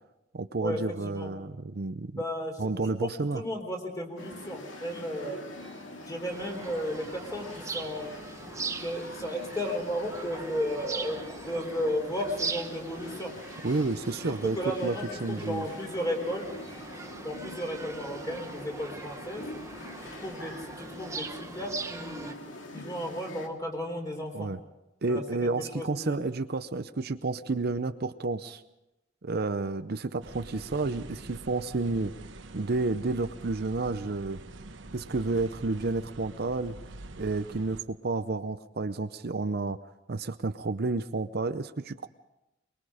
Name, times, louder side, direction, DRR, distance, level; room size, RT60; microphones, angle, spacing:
voice 1, 0.3-2.2 2.6-3.4 13.6-14.9 15.2-15.7 24.3-24.6 25.0-28.6 29.2-32.1 32.5-34.4 34.9-36.8 37.2-39.8 40.1-42.1, right 3 dB, 55° right, 10 dB, 0.7 m, -30 dB
voice 2, 2.2-5.4 6.1-8.2 8.8-13.3 14.4-16.5 17.2-19.4 20.2-22.4 22.7-24.5 25.1-26.2, equal, 20° left, 2 dB, 3.9 m, -34 dB
sound 1, 4.2-23.5, left 1 dB, 85° left, 2.3 m, -44 dB
sound 2, 6.3-22.3, right 4 dB, 15° right, 0.9 m, -41 dB
sound 3, 30.2-37.8, right 2 dB, 75° right, 1.1 m, -46 dB
23.5 x 22.0 x 5.0 m, 0.96 s
head